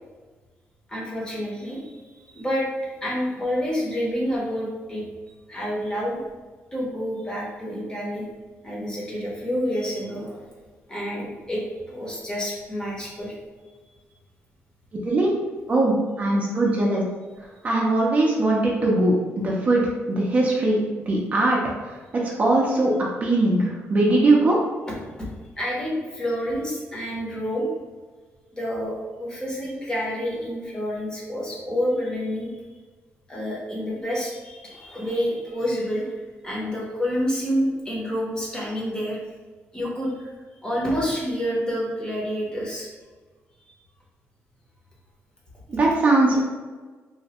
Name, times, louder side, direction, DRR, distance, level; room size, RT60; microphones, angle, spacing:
voice 1, 0.9-2.7 3.0-5.0 5.5-6.2 6.7-8.3 8.6-10.5 10.9-13.3 25.2-25.3 25.6-27.7 28.5-32.5 33.3-36.1 36.4-39.2 39.7-40.3 40.6-42.9, equal, 15° left, -4 dB, 0.7 m, -28 dB
voice 2, 15.0-15.3 15.7-17.0 17.6-19.8 20.1-20.8 21.1-22.9 23.2-24.6 45.7-46.4, right 2 dB, 30° right, -3 dB, 0.4 m, -20 dB
3.1 x 2.1 x 2.8 m, 1.4 s
cardioid pair, 150°, 5 cm